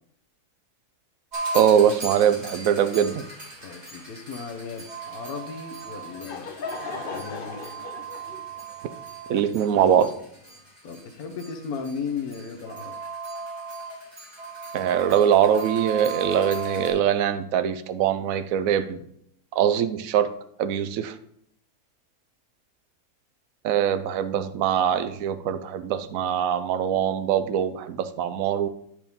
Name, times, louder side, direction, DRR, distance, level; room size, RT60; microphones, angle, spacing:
sound 1, 1.3-16.9, right 3 dB, 25° right, 2.8 m, -37 dB
voice 1, 1.5-3.2 9.3-10.1 14.7-19.0 19.5-20.3 20.6-21.2 23.6-28.7, right 9 dB, 65° right, 11 dB, 1.0 m, -22 dB
voice 2, 3.6-6.5 7.1-7.6 10.8-12.9, left 5 dB, 70° left, 5 dB, 1.4 m, -35 dB
Laughter / Crowd, 5.9-10.5, left 4 dB, 45° left, 0.7 m, -38 dB
9.9 x 4.7 x 5.3 m, 0.70 s
omnidirectional pair, 1.7 m